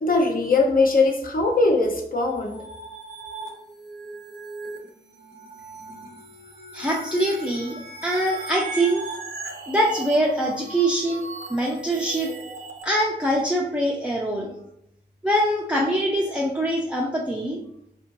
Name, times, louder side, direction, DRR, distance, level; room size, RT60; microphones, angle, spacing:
voice 1, 0.0-2.6, left 3 dB, 50° left, 2 dB, 0.7 m, -20 dB
sound 1, 2.2-12.8, right 3 dB, 65° right, 0.7 m, -38 dB
voice 2, 6.7-7.7 8.0-9.1 9.7-12.3 12.8-14.5 15.2-17.6, right 1 dB, 5° right, -3 dB, 0.5 m, -23 dB
3.5 x 2.5 x 2.9 m, 0.75 s
wide cardioid pair, 105°, 18 cm